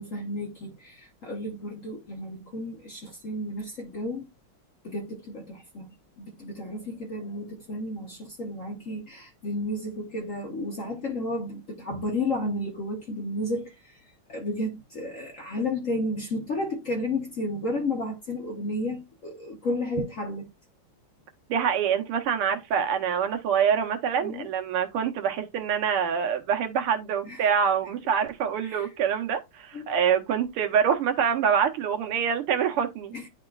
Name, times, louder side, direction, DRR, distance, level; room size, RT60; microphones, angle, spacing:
voice 1, 0.0-4.3 4.8-20.5 24.2-24.5 27.2-27.4 28.6-28.9 29.7-29.9 33.1-33.3, left 1 dB, 55° left, 0.9 m, -32 dB
voice 2, 21.5-33.1, right 7 dB, 85° right, 1.8 m, -25 dB
9.8 x 4.2 x 2.3 m
omnidirectional pair, 2.4 m